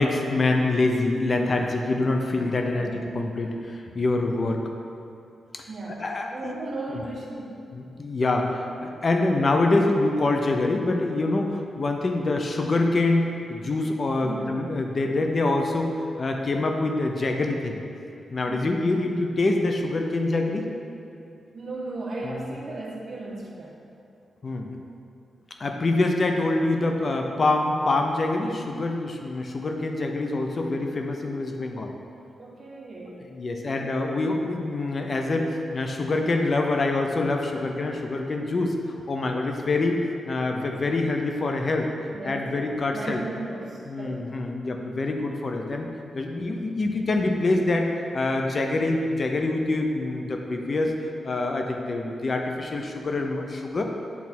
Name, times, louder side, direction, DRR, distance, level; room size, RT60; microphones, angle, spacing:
voice 1, 0.0-4.7 5.5-5.6 6.0-6.5 6.9-7.0 7.7-17.8 18.3-20.7 22.2-22.5 24.4-24.7 25.6-31.9 33.3-38.8 39.1-41.9 42.2-43.2 43.9-45.9 46.1-50.9 51.2-53.8, left 2 dB, 45° left, 3 dB, 0.7 m, -25 dB
voice 2, 5.7-7.6 14.2-14.5 18.5-18.7 21.5-23.7 32.4-33.4 42.1-44.2, right 2 dB, 50° right, -4 dB, 1.4 m, -36 dB
8.4 x 3.5 x 4.3 m, 2.6 s
cardioid pair, 85°, 0 cm